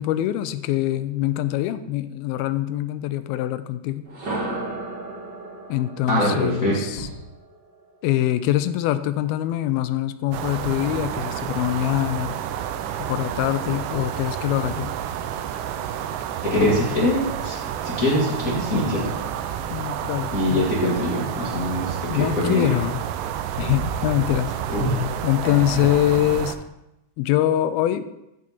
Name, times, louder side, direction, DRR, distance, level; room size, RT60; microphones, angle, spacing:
voice 1, 0.0-4.1 5.7-7.1 8.0-12.4 13.0-14.9 19.7-20.7 22.1-23.1 23.6-24.6 25.2-26.6 27.2-28.1, left 13 dB, 80° left, 12 dB, 2.3 m, -24 dB
sound 1, 4.0-8.0, right 2 dB, 35° right, 2.2 m, -34 dB
voice 2, 6.1-7.1 16.4-17.6 17.8-19.0 20.3-22.7 24.7-24.9, left 1 dB, 45° left, -6 dB, 1.1 m, -23 dB
sound 2, 10.3-26.6, right 9 dB, 85° right, 1.9 m, -30 dB
14.5 x 4.9 x 4.2 m, 0.89 s
omnidirectional pair, 4.5 m